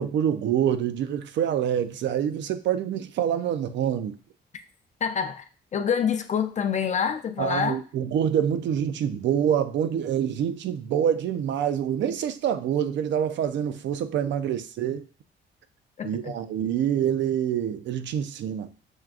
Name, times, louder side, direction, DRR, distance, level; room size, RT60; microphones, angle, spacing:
voice 1, 0.0-4.2 7.4-15.1 16.0-18.7, right 9 dB, 70° right, 0.4 m, -26 dB
voice 2, 5.0-5.4 5.7-7.8 16.0-16.3, left 7 dB, 35° left, 0.4 m, -26 dB
6.2 x 2.4 x 2.3 m
cardioid pair, 90°, 20 cm